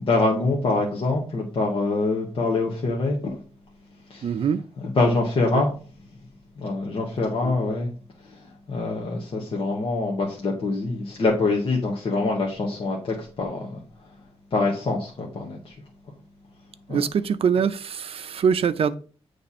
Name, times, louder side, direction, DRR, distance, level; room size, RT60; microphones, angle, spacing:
voice 1, 0.0-3.4 4.1-4.3 4.9-5.7 6.6-7.9 8.3-13.8 14.5-15.8 16.9-17.0, left 3 dB, 55° left, 1.3 m, -25 dB
voice 2, 4.2-4.6 5.5-5.6 7.4-7.5 16.9-19.0, right 7 dB, 60° right, 0.5 m, -23 dB
8.7 x 3.3 x 4.2 m
wide cardioid pair, 160°, 11 cm